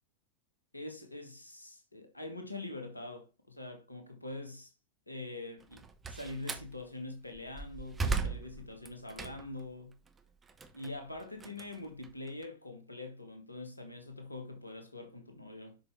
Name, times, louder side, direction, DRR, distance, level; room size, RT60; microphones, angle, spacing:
voice 1, 0.7-4.7 5.1-5.8 6.1-10.0 10.7-15.8, left 2 dB, 85° left, 1.7 m, -44 dB
Slam, 5.6-6.7 7.3-9.6 10.1-12.4, right 4 dB, 15° right, 1.0 m, -37 dB
7.4 x 6.0 x 3.3 m
figure-of-eight pair, 90°, 0 cm